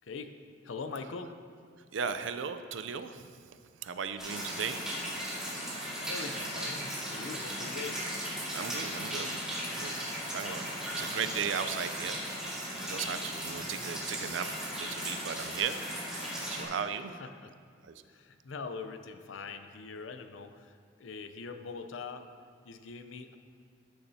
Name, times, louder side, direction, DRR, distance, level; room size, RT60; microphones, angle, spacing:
voice 1, 0.0-0.4 0.6-1.3 6.1-8.0 17.2-17.5 18.1-20.7 21.0-22.3 22.6-23.4, left 4 dB, 85° left, 8 dB, 0.6 m, -42 dB
voice 2, 1.9-4.8 8.5-9.3 9.7-10.1 10.3-10.6 11.0-12.2 12.8-15.8 16.5-17.1 17.8-17.9, right 7 dB, 75° right, 11 dB, 0.4 m, -36 dB
sound 1, 4.2-16.6, equal, 5° right, 2.0 m, -37 dB
13.5 x 6.9 x 2.8 m, 2.1 s
head